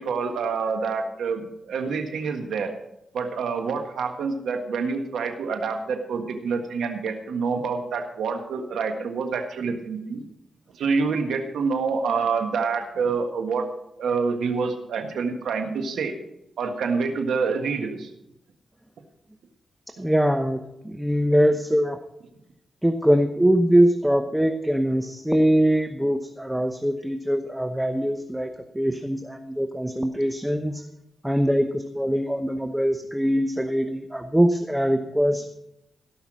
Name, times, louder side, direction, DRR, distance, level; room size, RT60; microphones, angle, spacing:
voice 1, 0.0-2.7 3.1-10.3 10.8-13.7 14.0-16.1 16.6-18.1, right 5 dB, 85° right, 5 dB, 1.6 m, -27 dB
voice 2, 20.0-20.6 20.8-22.0 22.8-30.8 31.2-35.5, equal, 5° right, 7 dB, 0.9 m, -22 dB
17.5 x 5.9 x 6.2 m, 0.86 s
cardioid pair, 75°, 0 cm